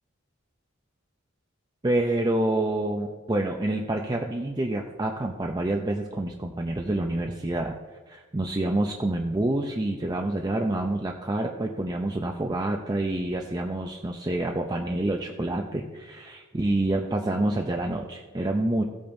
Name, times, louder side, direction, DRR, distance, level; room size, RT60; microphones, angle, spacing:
voice 1, 1.8-7.8 8.1-18.8, right 1 dB, 20° right, 1 dB, 0.5 m, -27 dB
16.0 x 8.6 x 2.6 m, 1.4 s
head